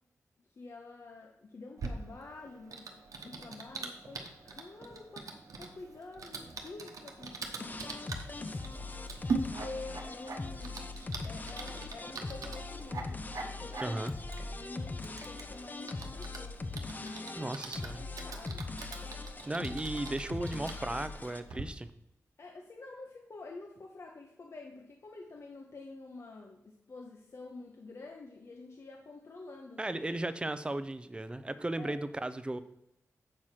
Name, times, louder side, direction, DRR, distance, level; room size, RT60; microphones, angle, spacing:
voice 1, 0.4-5.3 5.6-7.9 9.3-10.8 11.2-14.0 14.6-16.6 17.0-17.6 17.9-18.6 22.4-30.0 31.8-32.0, left 3 dB, 55° left, 1 dB, 0.8 m, -48 dB
Typing, 1.8-21.6, right 4 dB, 90° right, 1.0 m, -43 dB
sound 1, 2.5-2.8 3.2-3.5 4.0-4.4 4.8-5.2 5.6-6.0 6.4-6.8 7.2-7.6 8.0-8.4 8.8-9.2 9.6-10.8 11.2-11.6 12.0-12.4 12.8-13.2 13.6-14.0 14.4-14.7 15.2-15.6 16.0-16.4 16.9-17.1, right 2 dB, 55° right, 1.3 m, -58 dB
sound 2, 7.6-21.4, left 3 dB, 30° left, 0.6 m, -41 dB
voice 2, 13.8-14.1 17.4-18.1 19.5-21.9 29.8-32.6, right 2 dB, 20° right, 12 dB, 0.5 m, -36 dB
7.6 x 4.7 x 5.7 m, 0.83 s
wide cardioid pair, 130°, 6 cm